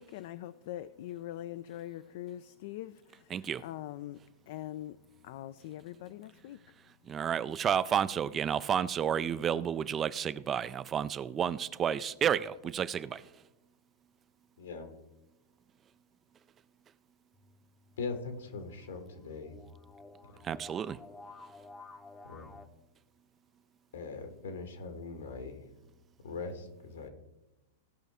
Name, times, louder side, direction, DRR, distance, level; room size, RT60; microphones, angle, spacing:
voice 1, 0.0-5.0 5.2-6.6, left 13 dB, 60° left, 0.4 m, -43 dB
voice 2, 3.3-3.6 7.1-13.3 20.4-21.0, right 8 dB, 25° right, 0.4 m, -31 dB
voice 3, 14.6-14.9 18.0-19.6 20.3-20.6 22.2-22.5 23.9-25.7 26.2-27.1, left 4 dB, 80° left, 1.6 m, -41 dB
sound 1, 17.3-22.7, left 3 dB, 15° left, 0.7 m, -53 dB
16.5 x 5.5 x 3.6 m
hypercardioid pair, 110°, 0 cm